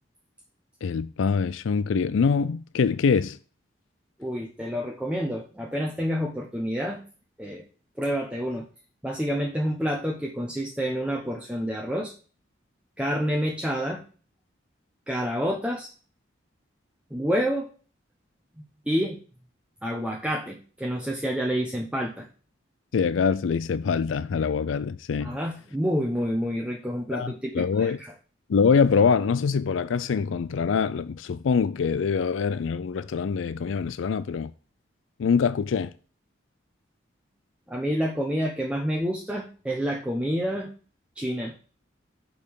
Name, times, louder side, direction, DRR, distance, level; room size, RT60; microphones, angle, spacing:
voice 1, 0.8-3.4 22.9-25.4 27.1-28.0 28.5-34.5 35.2-35.9, left 5 dB, 80° left, 0.4 m, -24 dB
voice 2, 4.2-7.0 7.4-7.6 8.0-8.6 9.0-12.1 13.0-14.0 15.1-15.9 17.1-17.7 18.9-19.2 19.8-22.3 25.2-28.1 37.7-40.7 41.2-41.6, equal, 5° right, 0.8 m, -28 dB
6.7 x 5.5 x 4.6 m
head